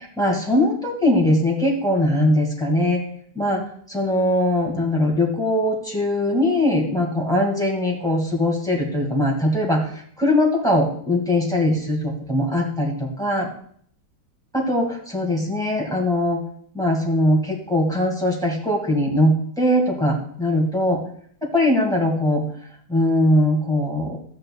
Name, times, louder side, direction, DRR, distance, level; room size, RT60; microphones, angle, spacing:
voice 1, 0.0-3.0 3.3-3.6 3.9-13.5 14.5-16.4 16.7-21.0 21.4-22.5 22.9-24.2, left 1 dB, ahead, -1 dB, 1.7 m, -21 dB
13.0 x 9.0 x 2.3 m, 0.62 s
omnidirectional pair, 2.2 m